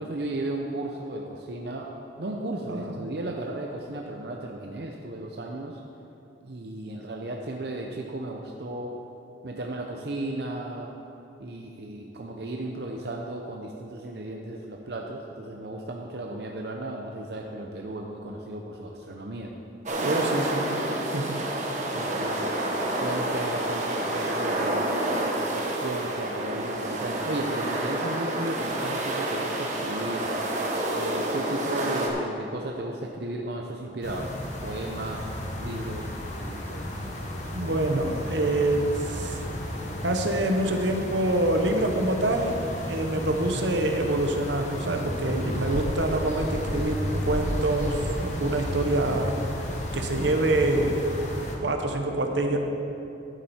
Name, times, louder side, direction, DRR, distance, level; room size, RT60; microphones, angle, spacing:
voice 1, 0.0-1.9 2.2-5.8 6.4-9.0 9.4-10.9 11.4-19.5 21.9-22.5 23.0-24.9 25.4-30.3 30.9-34.3 34.6-35.3 35.5-36.1 36.4-36.8, right 1 dB, 60° right, 1 dB, 0.6 m, -34 dB
voice 2, 2.7-3.0 20.0-20.7 21.1-21.4 37.5-39.4 40.0-42.6 42.9-49.3 49.9-51.0 51.6-52.6, right 1 dB, 85° right, 4 dB, 1.0 m, -26 dB
sound 1, 19.9-32.1, right 1 dB, 40° right, 1.2 m, -29 dB
sound 2, 34.0-51.6, left 1 dB, 40° left, 1.2 m, -33 dB
11.0 x 8.8 x 4.3 m, 2.9 s
head